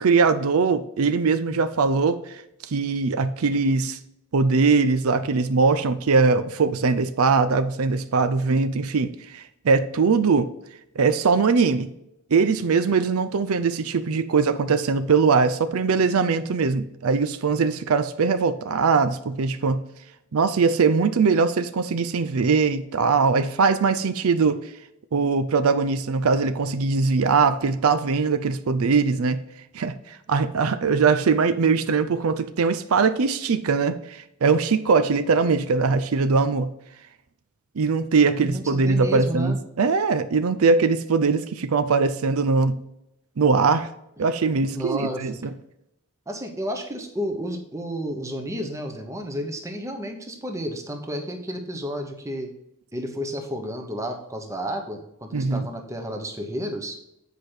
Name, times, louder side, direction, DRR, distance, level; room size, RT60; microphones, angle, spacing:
voice 1, 0.0-4.0 4.3-10.5 11.0-11.9 12.3-19.8 20.3-24.6 25.1-29.4 29.7-29.9 30.3-36.7 37.8-42.8 43.4-43.9 44.2-45.5 55.3-55.7, right 4 dB, 85° right, 11 dB, 0.5 m, -21 dB
voice 2, 38.4-39.6 44.7-45.3 46.3-52.5 52.9-57.0, equal, 15° right, 4 dB, 0.9 m, -31 dB
8.3 x 5.0 x 4.4 m, 0.83 s
head